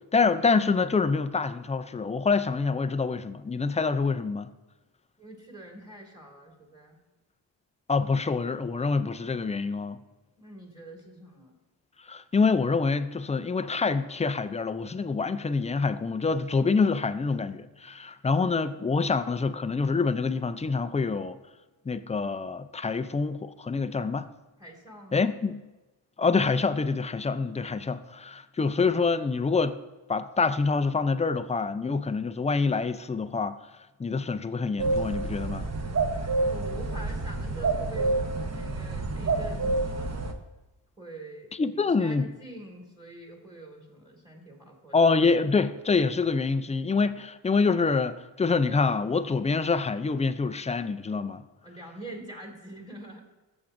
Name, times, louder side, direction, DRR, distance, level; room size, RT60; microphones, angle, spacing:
voice 1, 0.1-4.5 7.9-10.0 12.1-21.4 21.9-24.3 25.1-25.6 26.2-29.8 30.1-33.6 34.0-35.7 41.6-42.3 44.9-51.4, left 4 dB, 15° left, 0.3 m, -26 dB
voice 2, 5.2-7.0 10.4-11.5 24.6-25.3 36.4-40.3 41.0-45.0 51.6-53.2, right 1 dB, 10° right, 2.0 m, -45 dB
sound 1, 34.8-40.3, right 3 dB, 35° right, 0.9 m, -28 dB
14.5 x 7.0 x 2.6 m
wide cardioid pair, 110°, 47 cm